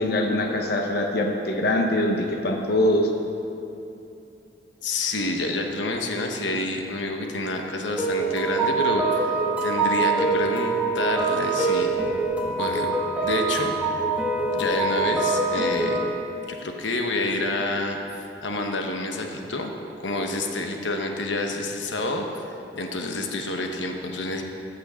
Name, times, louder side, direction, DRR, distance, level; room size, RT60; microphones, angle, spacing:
voice 1, 0.0-3.1, left 1 dB, 55° left, 2 dB, 0.9 m, -23 dB
voice 2, 4.8-11.9 12.5-12.9 13.2-14.1 14.5-16.0 16.4-19.7 20.0-22.4 22.7-24.4, left 2 dB, 85° left, 3 dB, 1.1 m, -28 dB
sound 1, 8.0-16.0, right 3 dB, 10° right, 1.4 m, -24 dB
15.0 x 6.2 x 6.3 m, 2.8 s
head